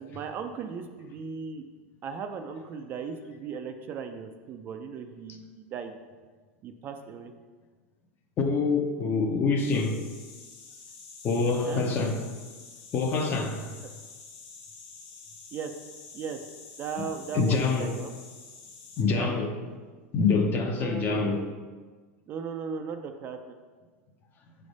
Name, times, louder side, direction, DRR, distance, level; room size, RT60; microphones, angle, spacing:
voice 1, 0.0-1.7 2.0-5.9 6.6-7.3 11.6-11.9 15.5-15.7 16.1-16.4 16.8-18.1 19.1-19.3 20.8-21.5 22.3-23.6, right 6 dB, 30° right, 0.4 m, -37 dB
voice 2, 8.4-10.0 11.2-12.2 12.9-13.7 17.3-18.0 19.0-19.5 20.1-21.4, left 4 dB, 25° left, 0.6 m, -25 dB
sound 1, 9.6-19.0, left 4 dB, 55° left, 0.9 m, -48 dB
6.1 x 3.3 x 5.2 m
supercardioid pair, 150°, 7 cm